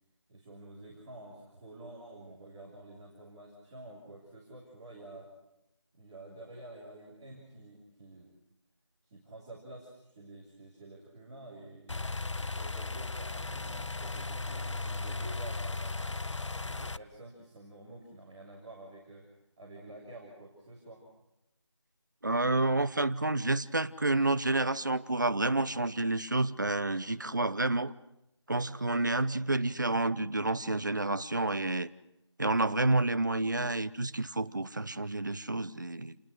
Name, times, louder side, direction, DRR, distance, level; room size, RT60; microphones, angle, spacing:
voice 1, 0.3-5.3 5.9-8.3 9.0-12.1 12.5-19.3 19.6-21.0 29.3-29.5, right 2 dB, 10° right, -9 dB, 2.6 m, -49 dB
sound 1, 11.9-17.0, left 3 dB, 85° left, 0.9 m, -36 dB
voice 2, 22.2-27.9 28.5-31.9 32.4-36.1, right 2 dB, 40° right, 14 dB, 0.9 m, -29 dB
29.5 x 19.5 x 6.4 m, 0.88 s
figure-of-eight pair, 175°, 15 cm